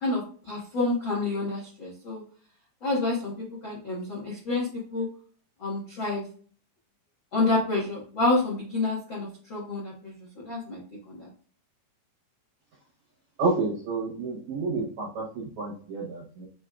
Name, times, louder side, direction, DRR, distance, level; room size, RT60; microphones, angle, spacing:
voice 1, 0.0-2.2 2.8-5.1 5.6-6.3 7.3-10.8 11.1-11.3, left 2 dB, 60° left, -4 dB, 1.3 m, -28 dB
voice 2, 13.4-15.2 15.6-16.5, right 3 dB, 70° right, -3 dB, 1.8 m, -29 dB
6.6 x 3.0 x 2.4 m, 0.44 s
omnidirectional pair, 4.8 m